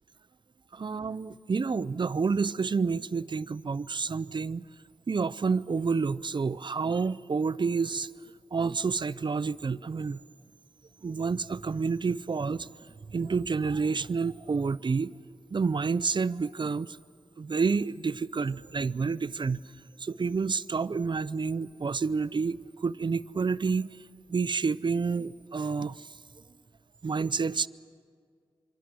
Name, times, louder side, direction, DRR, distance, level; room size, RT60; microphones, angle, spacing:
voice 1, 0.7-4.6 5.1-8.1 8.5-10.2 11.0-12.7 13.1-15.1 15.5-17.0 17.4-19.6 20.0-23.9 24.3-26.1 27.0-27.7, right 5 dB, 50° right, 0.6 m, -29 dB
26.5 x 24.5 x 6.2 m
cardioid pair, 45°, 10 cm